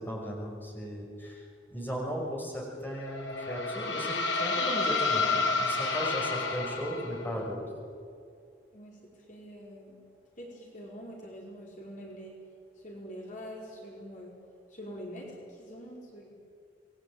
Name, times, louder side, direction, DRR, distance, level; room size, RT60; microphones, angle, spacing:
voice 1, 0.0-7.6, equal, 10° left, -2 dB, 6.0 m, -36 dB
sound 1, 3.0-7.4, left 3 dB, 85° left, 2.6 m, -30 dB
voice 2, 8.7-10.0 10.4-12.4 12.8-14.4 14.7-16.3, equal, 45° left, -2 dB, 4.9 m, -45 dB
26.5 x 21.5 x 8.8 m, 2.3 s
head